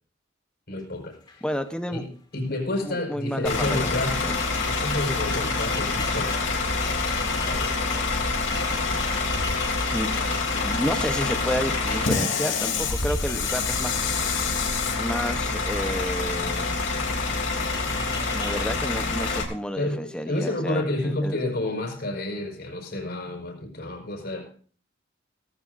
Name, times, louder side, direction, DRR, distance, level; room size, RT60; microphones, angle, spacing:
voice 1, 0.7-1.5 1.9-2.1 2.3-4.2 4.6-6.3 7.4-7.7 19.8-24.5, left 1 dB, 55° left, 2 dB, 5.2 m, -30 dB
sound 1, 0.8-0.9 1.1-2.5 3.6-15.8 16.4-16.8 17.1-18.6, left 3 dB, 25° left, 3.3 m, -42 dB
voice 2, 1.4-2.0 2.8-4.4 9.6-10.1 10.6-14.2 15.0-16.7 18.3-21.4, equal, 5° left, 7 dB, 1.0 m, -31 dB
Bus / Idling, 3.4-19.4, left 3 dB, 75° left, 3.2 m, -26 dB
18.0 x 14.5 x 2.7 m, 0.43 s
head